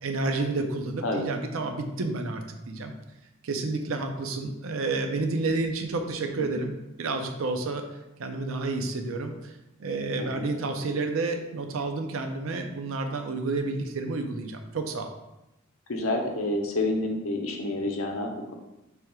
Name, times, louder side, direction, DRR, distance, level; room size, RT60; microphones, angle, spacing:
voice 1, 0.0-2.9 3.4-7.8 8.2-15.1, right 3 dB, 70° right, 5 dB, 0.5 m, -30 dB
voice 2, 15.9-18.5, left 2 dB, 75° left, 2 dB, 0.7 m, -29 dB
3.4 x 2.8 x 4.7 m, 0.93 s
head